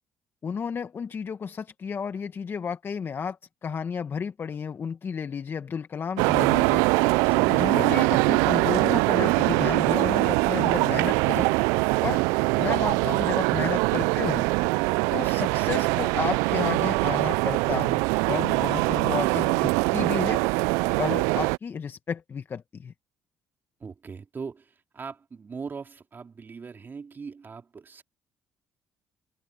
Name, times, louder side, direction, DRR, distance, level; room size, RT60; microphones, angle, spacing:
voice 1, 0.4-3.4 3.6-6.8 7.5-11.5 12.0-12.2 12.6-14.4 15.1-20.4 21.0-22.9, left 6 dB, 45° left, 1.7 m, -32 dB
sound 1, 6.2-21.6, right 26 dB, 85° right, 0.3 m, -23 dB
voice 2, 23.8-28.0, right 5 dB, 40° right, 4.1 m, -40 dB
hypercardioid pair, 60°, 5 cm